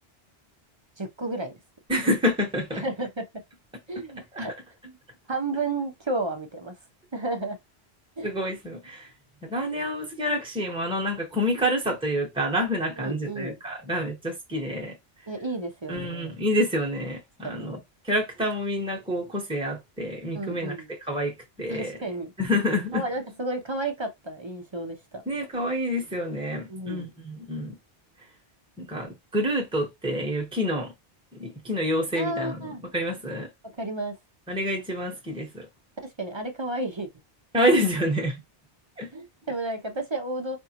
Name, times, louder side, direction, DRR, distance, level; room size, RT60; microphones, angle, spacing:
voice 1, 1.0-1.5 2.7-3.2 3.9-4.6 4.8-5.0 5.3-6.8 7.1-7.6 8.2-8.3 13.0-13.6 15.3-16.3 17.4-17.7 20.3-20.9 21.7-22.3 22.9-25.2 26.7-27.1 32.2-32.8 33.6-34.1 36.0-37.1 39.1-40.6, right 2 dB, 30° right, 0.6 m, -32 dB
voice 2, 1.9-2.8 8.2-9.1 9.4-15.0 15.9-17.8 18.0-20.8 21.0-22.0 22.4-23.0 25.3-27.8 28.8-30.9 31.3-33.5 34.5-35.7 37.5-38.4 39.0-39.1, equal, 5° right, 0.9 m, -28 dB
4.8 x 2.5 x 2.8 m
omnidirectional pair, 1.1 m